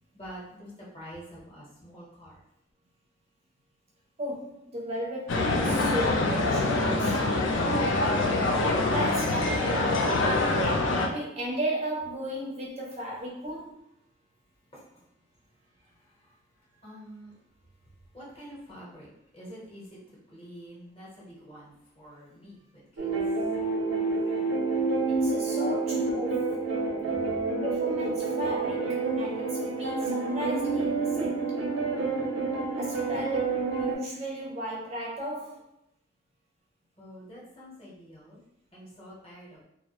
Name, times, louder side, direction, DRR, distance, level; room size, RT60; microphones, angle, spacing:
voice 1, 0.1-2.4 14.7-15.0 15.8-17.4 18.1-19.1 19.3-20.0 20.3-23.1 27.4-27.5 37.0-38.4 38.7-39.6, equal, 30° left, -6 dB, 0.8 m, -47 dB
voice 2, 4.2-7.2 7.7-8.3 8.7-10.8 11.1-13.8 25.1-26.6 27.6-31.4 32.8-35.6, right 1 dB, 30° right, -3 dB, 0.4 m, -35 dB
sound 1, 5.3-11.1, left 2 dB, 70° left, 0.4 m, -25 dB
sound 2, 23.0-33.9, right 3 dB, 80° right, 0.5 m, -28 dB
2.3 x 2.1 x 2.9 m, 0.79 s
head